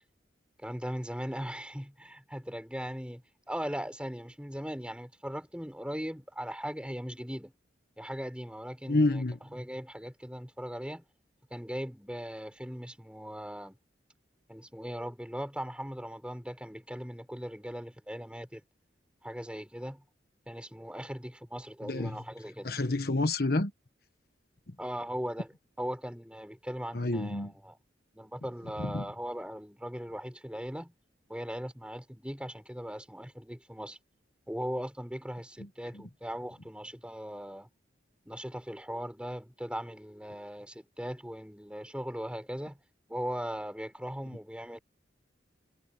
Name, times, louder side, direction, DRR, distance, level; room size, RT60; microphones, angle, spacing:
voice 1, 0.6-7.5 8.0-11.0 11.5-13.8 14.5-18.6 19.2-20.0 20.5-22.7 24.8-27.8 28.1-30.9 31.3-34.0 34.5-37.7 38.3-42.8 43.1-44.8, equal, 5° right, 5.7 m, -39 dB
voice 2, 8.9-9.4 21.9-22.2 22.6-23.7 26.9-27.5 28.8-29.0, left 2 dB, 55° left, 1.2 m, -28 dB
head